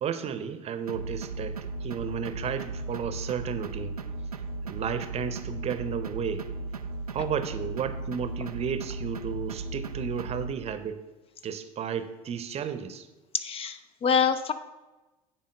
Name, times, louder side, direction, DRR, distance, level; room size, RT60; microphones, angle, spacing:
voice 1, 0.0-4.0 4.6-6.5 7.1-11.1 11.4-13.1, right 7 dB, 35° right, 11 dB, 0.7 m, -33 dB
sound 1, 0.9-10.5, right 2 dB, 90° right, 0.4 m, -36 dB
voice 2, 13.3-14.5, left 6 dB, 30° left, 11 dB, 0.5 m, -26 dB
9.3 x 4.2 x 6.3 m, 1.1 s
figure-of-eight pair, 70°, 19 cm